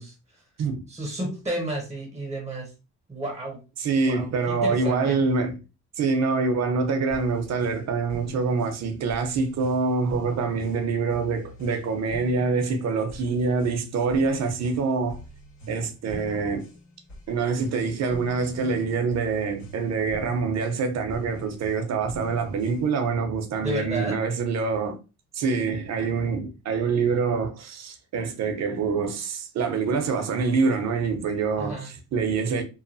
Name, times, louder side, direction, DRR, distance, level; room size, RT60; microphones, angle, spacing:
voice 1, 0.0-0.4 0.9-2.7 3.1-3.6 4.1-5.2 23.6-24.2 31.6-31.9, right 1 dB, 10° right, 0.7 m, -32 dB
voice 2, 3.8-5.5 6.0-15.2 15.7-16.7 17.3-25.0 25.3-32.6, right 4 dB, 60° right, 0.7 m, -25 dB
sound 1, 7.1-23.1, equal, 70° left, 1.6 m, -44 dB
3.1 x 2.1 x 2.5 m
cardioid pair, 90°, 30 cm